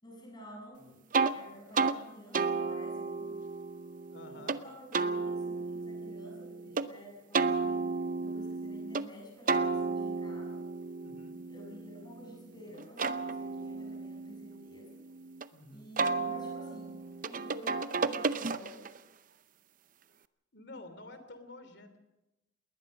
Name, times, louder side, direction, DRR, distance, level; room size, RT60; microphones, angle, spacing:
voice 1, 0.0-1.0 1.3-3.3 4.4-7.9 8.2-10.7 11.5-15.0 15.7-17.0 17.2-18.9, equal, 25° left, 0 dB, 7.2 m, -50 dB
sound 1, 1.1-1.4 1.7-2.0 2.3-4.6 4.9-6.9 7.3-9.1 9.5-12.4 12.8-15.5 16.0-19.0, right 4 dB, 45° right, 0.7 m, -33 dB
voice 2, 4.1-4.6 11.0-11.4 15.5-15.9 20.5-22.0, left 2 dB, 60° left, 10 dB, 3.0 m, -49 dB
20.5 x 19.5 x 6.5 m, 0.97 s
head